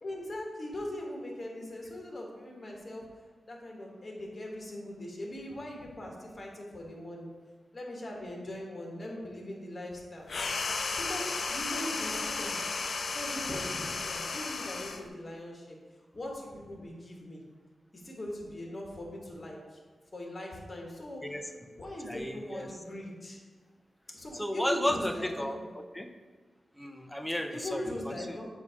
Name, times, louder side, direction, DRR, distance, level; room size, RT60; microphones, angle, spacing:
voice 1, 0.0-3.0 3.4-7.3 7.7-10.3 11.1-12.6 13.1-15.8 16.1-17.4 18.0-19.6 20.1-21.2 21.8-23.4 24.1-25.6 27.5-28.4, left 1 dB, 40° left, -1 dB, 1.4 m, -40 dB
sound 1, 10.3-15.1, left 4 dB, 65° left, 0.4 m, -34 dB
voice 2, 22.0-22.7 24.3-26.1 26.8-28.4, left 1 dB, 5° left, 6 dB, 0.5 m, -34 dB
7.3 x 2.7 x 4.9 m, 1.4 s
cardioid pair, 55°, 0 cm